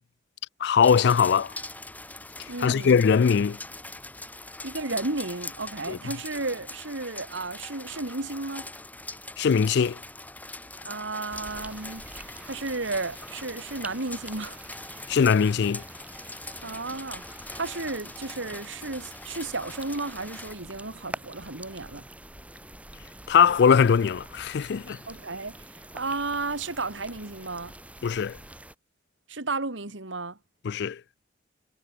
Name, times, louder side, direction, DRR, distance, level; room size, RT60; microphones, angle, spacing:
voice 1, 0.6-1.5 2.6-3.6 5.9-6.0 9.4-10.0 15.1-15.8 23.3-25.0 28.0-28.4 30.6-31.0, left 6 dB, 65° left, 0.4 m, -21 dB
sound 1, 0.8-20.6, left 2 dB, 10° left, 3.4 m, -42 dB
voice 2, 2.5-2.9 4.6-8.7 10.8-12.0 12.4-14.6 16.6-17.2 17.5-22.1 25.1-27.7 29.3-30.4, right 3 dB, 85° right, 2.5 m, -33 dB
sound 2, 11.3-28.7, right 1 dB, 5° right, 5.7 m, -46 dB
head